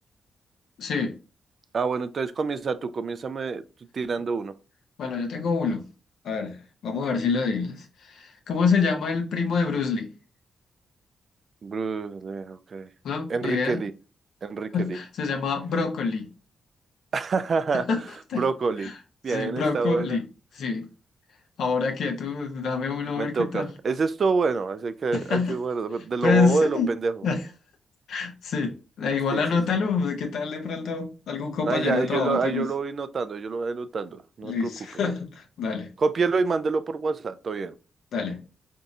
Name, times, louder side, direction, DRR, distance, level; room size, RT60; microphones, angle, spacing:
voice 1, 0.8-1.1 5.0-5.8 6.2-6.6 6.8-10.1 13.0-13.8 14.7-16.3 17.7-18.0 18.3-18.4 18.8-18.9 19.3-20.2 20.5-20.9 21.6-23.7 25.1-25.5 26.2-26.9 27.2-27.4 28.1-32.6 34.4-35.9 38.1-38.4, left 5 dB, 75° left, 0.7 m, -26 dB
voice 2, 1.7-3.6 3.9-4.5 11.6-12.9 13.3-13.9 14.4-15.0 17.1-18.1 18.4-18.9 19.2-20.2 23.2-27.3 29.3-29.4 31.6-34.7 36.0-37.8, right 4 dB, 55° right, 0.3 m, -27 dB
3.9 x 2.7 x 2.3 m
supercardioid pair, 55°, 0 cm